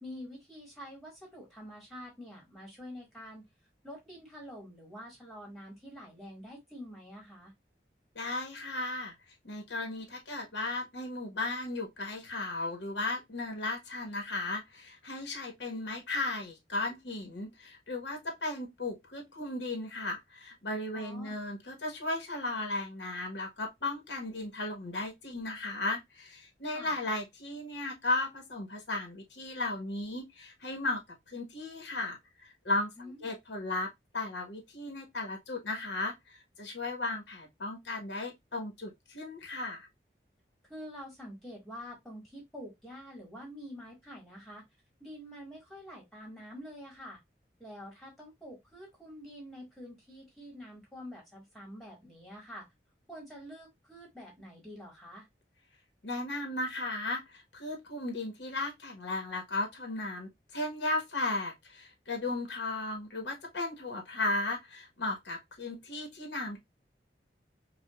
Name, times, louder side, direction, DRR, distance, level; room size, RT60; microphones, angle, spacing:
voice 1, 0.0-3.4 3.8-7.5 20.9-21.3 26.7-26.9 33.0-33.3 40.7-44.6 45.0-47.2 47.6-52.7 53.1-55.3, equal, ahead, 1.7 m, -47 dB
voice 2, 8.1-9.1 9.4-31.0 31.3-39.9 56.0-66.6, left 2 dB, 85° left, 1.3 m, -35 dB
5.0 x 2.4 x 2.3 m
head